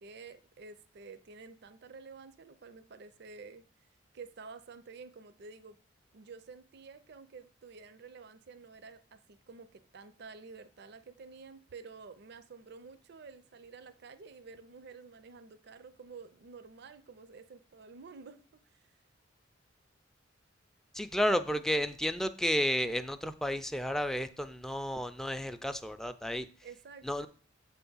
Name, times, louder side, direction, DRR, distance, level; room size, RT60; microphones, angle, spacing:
voice 1, 0.0-3.7 4.1-5.8 6.1-19.0 26.6-27.3, right 4 dB, 60° right, 0.5 m, -50 dB
voice 2, 20.9-26.5 27.0-27.3, equal, ahead, 0.3 m, -32 dB
7.8 x 3.4 x 5.5 m
head